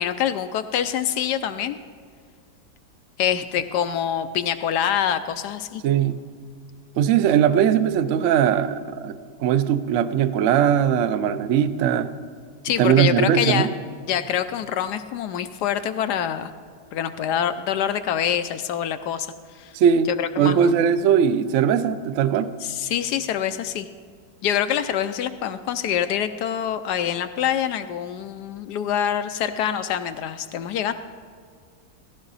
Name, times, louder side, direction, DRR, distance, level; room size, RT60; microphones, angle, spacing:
voice 1, 0.0-1.8 3.2-5.8 12.6-13.7 14.1-16.5 16.9-19.7 20.1-20.7 22.6-23.9 24.4-30.9, left 9 dB, 75° left, 10 dB, 1.0 m, -25 dB
voice 2, 5.8-6.2 7.0-12.1 12.8-13.7 19.7-20.1 20.4-22.5, right 9 dB, 75° right, 12 dB, 0.7 m, -20 dB
17.5 x 14.0 x 4.0 m, 2.1 s
omnidirectional pair, 1.9 m